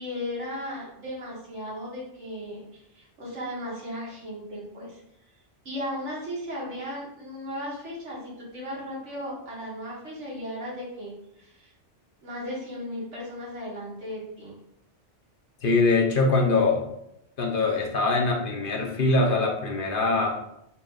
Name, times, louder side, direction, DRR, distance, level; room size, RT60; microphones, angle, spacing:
voice 1, 0.0-5.0 5.6-11.7 12.2-14.5, equal, 90° right, -5 dB, 2.0 m, -36 dB
voice 2, 15.6-16.8 17.4-20.4, left 3 dB, 55° left, 0 dB, 0.9 m, -23 dB
5.7 x 2.4 x 3.9 m, 0.80 s
omnidirectional pair, 1.2 m